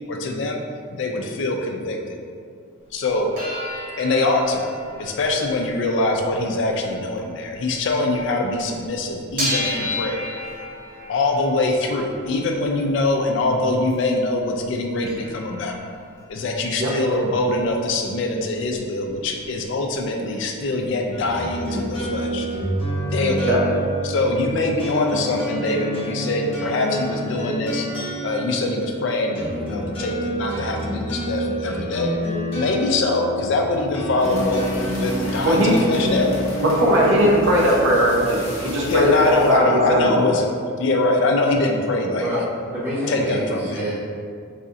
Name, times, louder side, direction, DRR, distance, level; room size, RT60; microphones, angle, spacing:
voice 1, 0.1-0.6 0.9-2.2 2.9-3.3 4.0-4.7 5.0-10.2 11.1-15.8 16.3-22.5 23.0-23.6 24.0-27.9 28.2-32.1 32.5-36.4 38.8-40.5 40.8-42.3 43.1-43.9, left 2 dB, 55° left, 2 dB, 0.3 m, -23 dB
sound 1, 3.3-8.3 8.6-14.1 14.6-14.7 14.8-18.8 19.1-20.0 20.3-20.4 20.6-21.7 22.1-22.2, left 1 dB, 40° right, 1.0 m, -34 dB
sound 2, 21.1-36.3, equal, 25° left, 0.8 m, -28 dB
sound 3, 34.2-39.6, right 1 dB, 75° left, 0.7 m, -33 dB
voice 2, 36.6-40.1, equal, 60° right, -3 dB, 0.6 m, -18 dB
voice 3, 42.2-43.9, equal, 10° right, -9 dB, 0.8 m, -27 dB
4.0 x 2.6 x 2.4 m, 2.3 s
head